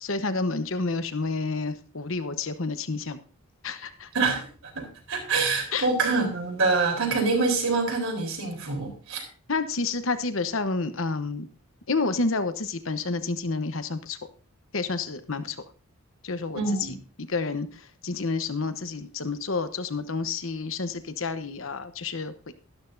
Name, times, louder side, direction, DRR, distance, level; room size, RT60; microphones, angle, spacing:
voice 1, 0.0-3.2 3.6-4.1 5.7-5.9 9.5-11.5 11.9-14.2 14.7-15.6 16.2-16.6 17.2-17.7 18.0-22.3, left 3 dB, 65° left, 10 dB, 1.0 m, -29 dB
voice 2, 4.1-4.5 4.7-9.2 16.5-17.0, right 4 dB, 70° right, 2 dB, 4.0 m, -25 dB
13.0 x 12.5 x 2.7 m, 0.36 s
head